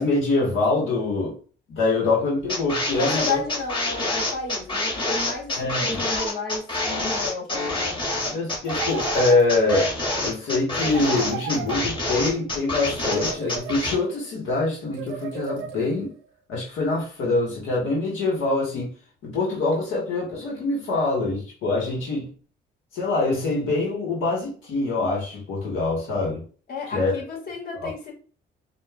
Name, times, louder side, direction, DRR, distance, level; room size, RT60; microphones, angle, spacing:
voice 1, 0.0-1.4 1.7-3.4 5.6-6.0 8.3-9.9 10.2-16.2 16.5-18.9 19.2-22.3 22.9-26.4 26.9-27.1 27.8-27.9, left 3 dB, 85° left, -3 dB, 1.5 m, -24 dB
sound 1, 2.5-14.0, left 2 dB, 25° left, 1.9 m, -27 dB
voice 2, 3.0-6.7 7.0-8.0 26.7-28.1, left 4 dB, 50° left, -2 dB, 2.0 m, -32 dB
sound 2, 8.6-9.9 10.8-12.3 13.0-14.2 14.9-16.1, right 8 dB, 85° right, 0.5 m, -35 dB
5.2 x 2.6 x 2.4 m, 0.39 s
cardioid pair, 90°, 20 cm